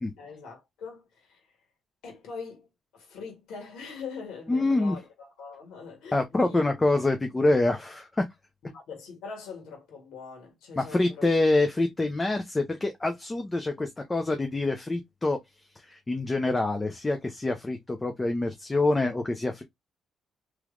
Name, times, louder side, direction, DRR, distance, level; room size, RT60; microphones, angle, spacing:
voice 1, 0.2-1.4 2.0-2.7 2.9-6.6 8.6-11.3, left 5 dB, 85° left, 1.6 m, -42 dB
voice 2, 4.5-5.0 6.1-8.2 10.8-15.4 15.8-19.6, left 2 dB, 20° left, 0.6 m, -26 dB
3.3 x 3.0 x 2.4 m
cardioid pair, 90°, 0 cm